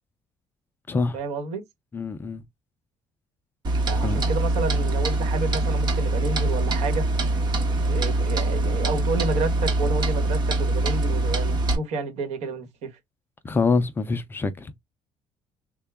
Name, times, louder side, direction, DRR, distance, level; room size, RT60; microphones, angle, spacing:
voice 1, 1.1-1.6 3.9-7.1 7.8-13.0, right 3 dB, 80° right, 1.3 m, -30 dB
voice 2, 1.9-2.4 4.0-4.2 13.4-14.7, left 4 dB, 20° left, 0.3 m, -25 dB
Clock, 3.6-11.8, right 2 dB, 40° right, 1.0 m, -23 dB
3.6 x 2.2 x 3.4 m
cardioid pair, 165°, 11 cm